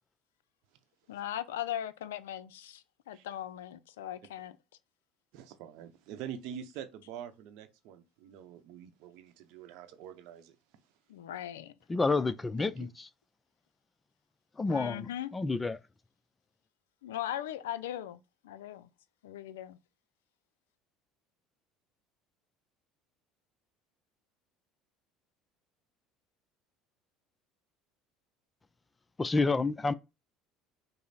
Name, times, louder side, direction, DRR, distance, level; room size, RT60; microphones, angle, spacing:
voice 1, 1.1-4.6 11.1-11.7 14.7-15.3 17.0-18.9 19.2-19.8, left 11 dB, 85° left, 0.4 m, -39 dB
voice 2, 5.3-10.6 12.6-12.9, right 9 dB, 70° right, 0.7 m, -45 dB
voice 3, 11.9-13.1 14.6-15.8 29.2-29.9, left 3 dB, 20° left, 0.4 m, -29 dB
5.4 x 2.0 x 4.0 m
hypercardioid pair, 80°, 0 cm